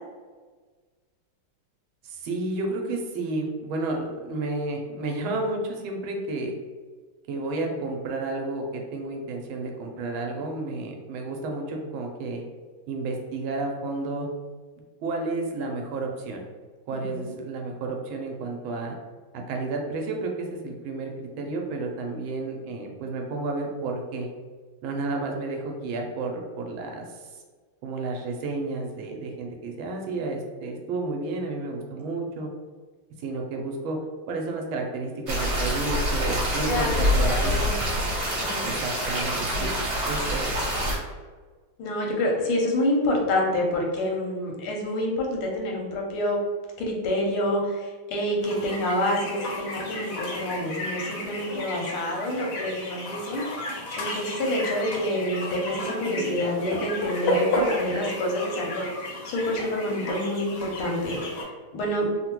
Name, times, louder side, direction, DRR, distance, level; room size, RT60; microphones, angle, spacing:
voice 1, 2.0-6.5 7.3-12.4 12.9-14.3 15.0-16.4 16.9-19.0 19.3-24.3 24.8-27.2 27.8-32.5 33.2-34.0 34.3-37.9 38.6-39.7 40.1-40.5, right 3 dB, 80° right, 2 dB, 1.4 m, -31 dB
voice 2, 16.9-17.3 36.6-36.9 37.2-37.9 38.4-38.7 39.3-39.8 41.8-46.4 46.8-62.1, left 1 dB, 85° left, 0 dB, 1.6 m, -28 dB
sound 1, 35.3-41.0, equal, 55° right, 0.8 m, -26 dB
sound 2, 48.4-61.4, left 1 dB, 65° left, 0.8 m, -32 dB
3.6 x 2.1 x 2.9 m, 1.4 s
omnidirectional pair, 2.2 m